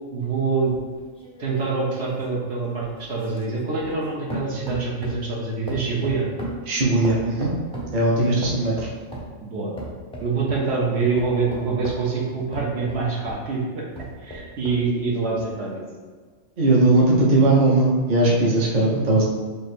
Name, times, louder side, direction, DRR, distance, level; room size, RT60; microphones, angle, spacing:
voice 1, 0.1-0.7 1.4-6.3 8.2-8.3 9.4-9.7 10.2-13.9 14.2-15.8, right 4 dB, 65° right, -4 dB, 1.0 m, -25 dB
sound 1, 0.7-4.0 4.3-5.3 5.7-8.0 8.4-9.3 9.8-10.7 11.2-13.5 13.9-14.9 15.4-15.5, right 1 dB, 5° left, 0.5 m, -36 dB
voice 2, 6.7-7.5 7.9-8.9 16.6-19.2, right 2 dB, 40° right, -4 dB, 0.7 m, -19 dB
3.3 x 2.5 x 4.3 m, 1.5 s
omnidirectional pair, 1.3 m